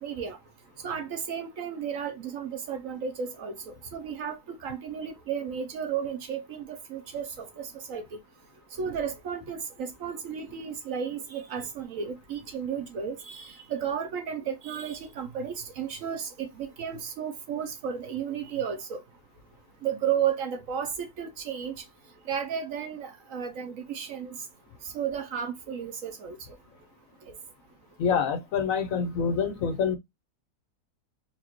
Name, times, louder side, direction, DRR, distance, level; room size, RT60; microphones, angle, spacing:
voice 1, 0.0-0.4 0.8-8.2 8.8-19.0 19.8-21.7 22.3-24.4 24.9-26.4, right 7 dB, 65° right, 1.0 m, -33 dB
voice 2, 28.0-30.0, left 6 dB, 65° left, 0.9 m, -26 dB
4.2 x 2.5 x 2.9 m
omnidirectional pair, 1.7 m